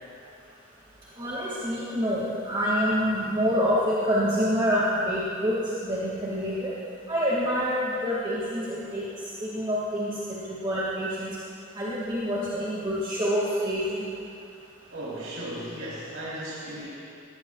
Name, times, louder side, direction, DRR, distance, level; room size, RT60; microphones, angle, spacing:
voice 1, 1.2-6.7 7.1-9.0 9.4-10.1 10.6-11.3 11.8-14.0, equal, 25° right, -8 dB, 2.1 m, -26 dB
voice 2, 14.9-16.9, right 1 dB, 80° right, -8 dB, 3.5 m, -36 dB
20.0 x 17.0 x 2.4 m, 2.5 s
head